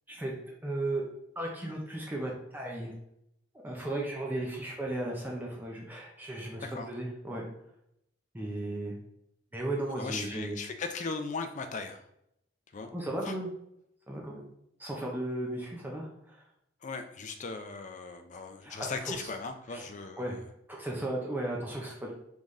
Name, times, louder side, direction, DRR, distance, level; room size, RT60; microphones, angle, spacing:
voice 1, 0.6-1.0 1.4-2.9 3.6-7.5 8.3-8.9 9.5-10.6 12.9-13.5 14.1-14.5 14.8-16.4 18.6-19.1 19.7-19.9 20.2-20.4 20.7-22.1, right 1 dB, 10° right, -2 dB, 0.6 m, -35 dB
voice 2, 10.0-12.0 12.7-12.9 13.2-13.3 16.8-20.3, left 4 dB, 40° left, 6 dB, 0.5 m, -38 dB
3.9 x 3.5 x 3.1 m, 0.77 s
head